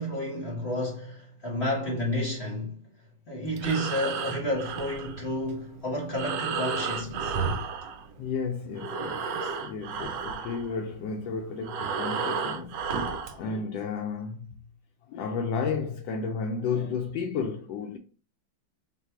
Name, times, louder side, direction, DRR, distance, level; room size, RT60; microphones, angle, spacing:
voice 1, 0.0-2.8 3.3-7.4 9.3-9.5, equal, 45° left, 0.9 m, -31 dB
Breathing, 3.4-8.4 8.7-13.4, right 5 dB, 70° right, 1.2 m, -33 dB
voice 2, 8.2-9.3 9.6-14.6 15.1-18.0, left 5 dB, 75° left, 1.2 m, -32 dB
4.0 x 2.3 x 4.5 m
omnidirectional pair, 2.2 m